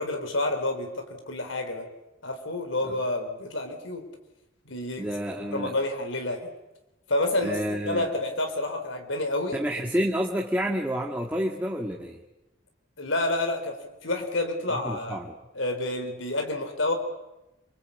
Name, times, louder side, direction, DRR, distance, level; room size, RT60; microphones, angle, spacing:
voice 1, 0.0-1.9 2.2-4.0 4.7-5.1 5.5-6.5 7.1-9.6 13.0-15.2 15.5-16.9, left 2 dB, 85° left, 5 dB, 3.9 m, -29 dB
voice 2, 5.0-5.7 7.4-8.1 9.5-12.2 14.8-15.3, equal, 10° right, 0 dB, 1.9 m, -29 dB
27.5 x 25.0 x 8.5 m, 0.96 s
head